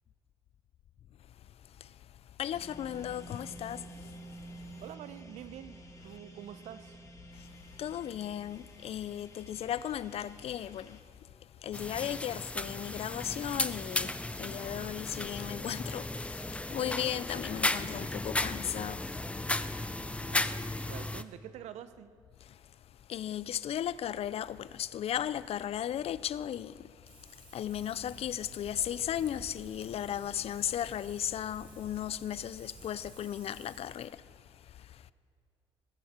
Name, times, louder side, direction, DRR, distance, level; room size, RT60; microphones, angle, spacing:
voice 1, 2.4-4.1 4.7-4.8 7.3-7.5 7.8-11.0 11.6-19.2 19.5-19.6 22.5-22.6 23.1-35.1, left 10 dB, 60° left, 0.5 m, -36 dB
sound 1, 2.5-11.0, right 1 dB, 30° left, 2.2 m, -51 dB
voice 2, 4.8-7.0 20.3-22.1, right 10 dB, 75° right, 0.8 m, -47 dB
sound 2, 11.7-21.2, left 2 dB, 10° left, 0.6 m, -35 dB
Wind, 27.1-34.1, right 2 dB, 45° right, 3.6 m, -52 dB
19.5 x 15.0 x 4.4 m
supercardioid pair, 60°, 12 cm